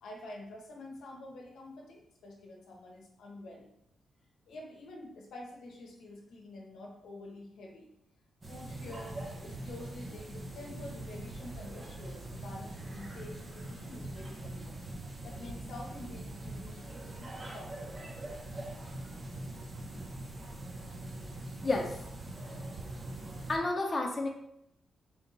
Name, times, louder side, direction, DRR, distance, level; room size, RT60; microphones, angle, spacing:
voice 1, 0.0-3.7 4.5-7.9 8.5-14.8 15.2-18.0, left 2 dB, 85° left, -2 dB, 0.9 m, -48 dB
sound 1, 8.4-23.6, right 1 dB, 30° right, 0.8 m, -43 dB
voice 2, 21.6-22.0 23.5-24.3, left 2 dB, 35° left, 1 dB, 0.9 m, -30 dB
3.6 x 2.5 x 4.0 m, 0.77 s
cardioid pair, 70°, 0 cm